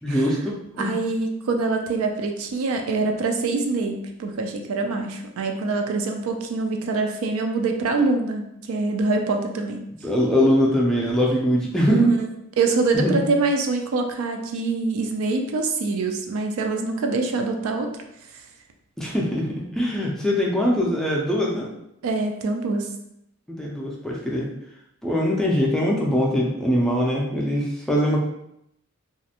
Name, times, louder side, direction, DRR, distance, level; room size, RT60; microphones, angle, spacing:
voice 1, 0.0-1.0 10.0-12.1 13.0-13.2 19.0-19.5 19.7-21.7 23.5-24.5 25.0-28.2, equal, 5° left, -3 dB, 0.4 m, -22 dB
voice 2, 0.8-9.9 11.9-12.3 12.6-18.0 18.3-18.4 22.0-22.9, right 3 dB, 80° right, 4 dB, 0.4 m, -24 dB
2.4 x 2.1 x 2.7 m, 0.79 s
head